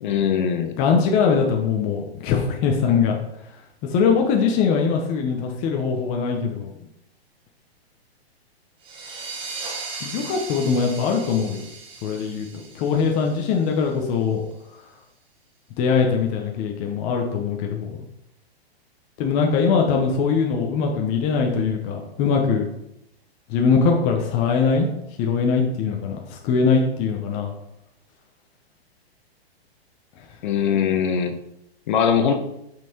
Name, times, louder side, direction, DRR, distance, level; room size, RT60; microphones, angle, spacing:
voice 1, 0.0-0.7 30.4-31.4 31.9-32.4, left 7 dB, 50° left, 7 dB, 1.0 m, -21 dB
voice 2, 0.8-3.2 3.8-6.7 10.0-11.6 12.0-12.5 12.7-14.4 15.8-18.0 19.2-22.7 23.5-24.9 25.2-27.5, left 5 dB, 25° left, 1 dB, 0.7 m, -21 dB
sound 1, 8.8-14.1, right 4 dB, 15° right, 1.0 m, -37 dB
5.9 x 5.7 x 4.4 m, 0.83 s
hypercardioid pair, 150°, 32 cm